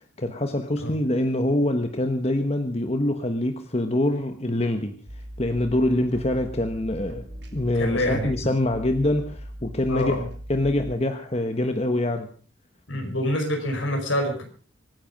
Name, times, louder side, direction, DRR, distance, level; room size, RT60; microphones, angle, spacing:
voice 1, 0.2-5.0 5.4-7.3 7.5-10.2 10.5-12.3, left 1 dB, 30° left, 7 dB, 1.2 m, -25 dB
sound 1, 5.1-10.9, equal, 55° right, 3.0 m, -39 dB
voice 2, 7.7-8.5 9.9-10.3 12.9-14.4, left 1 dB, 75° left, 4 dB, 5.1 m, -26 dB
25.0 x 10.0 x 5.4 m, 0.41 s
head